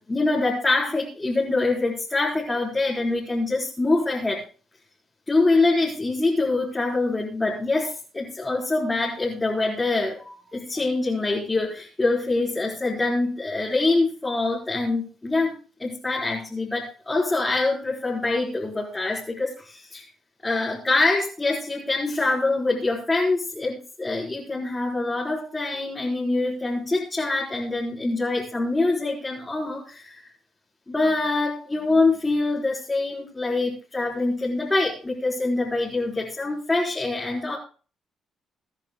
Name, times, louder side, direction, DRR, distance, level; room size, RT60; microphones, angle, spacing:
voice 1, 0.0-4.4 5.3-20.1 20.4-30.3 30.9-37.6, left 2 dB, 15° left, -4 dB, 4.3 m, -25 dB
23.5 x 10.5 x 2.2 m, 0.37 s
cardioid pair, 90°, 0 cm